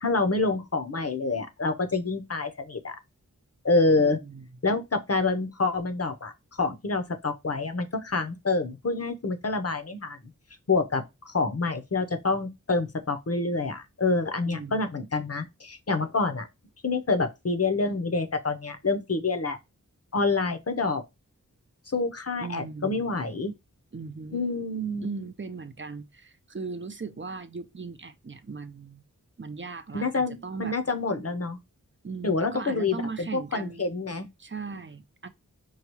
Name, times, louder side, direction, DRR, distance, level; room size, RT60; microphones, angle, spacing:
voice 1, 0.0-3.0 3.6-4.2 4.6-6.3 6.6-10.2 10.7-16.5 16.8-19.6 20.1-21.0 21.9-23.5 24.3-25.1 29.9-31.6 32.2-34.3, left 3 dB, 45° left, 0.8 m, -27 dB
voice 2, 4.0-4.5 14.5-14.9 22.4-23.1 23.9-24.4 25.0-29.0 29.4-30.8 32.0-34.0 34.4-35.3, right 4 dB, 35° right, 0.6 m, -38 dB
4.7 x 2.3 x 2.9 m
wide cardioid pair, 40°, 34 cm